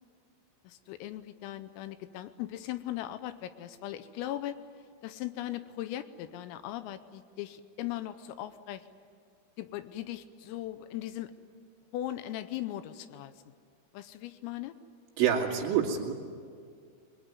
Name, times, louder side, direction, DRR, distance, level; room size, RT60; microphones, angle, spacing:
voice 1, 0.7-4.6 5.0-8.9 9.6-11.3 11.9-13.3 13.9-14.8, left 13 dB, 85° left, 12 dB, 3.5 m, -38 dB
voice 2, 15.2-16.1, right 8 dB, 70° right, -2 dB, 4.9 m, -27 dB
24.0 x 23.0 x 9.6 m, 2.1 s
omnidirectional pair, 6.0 m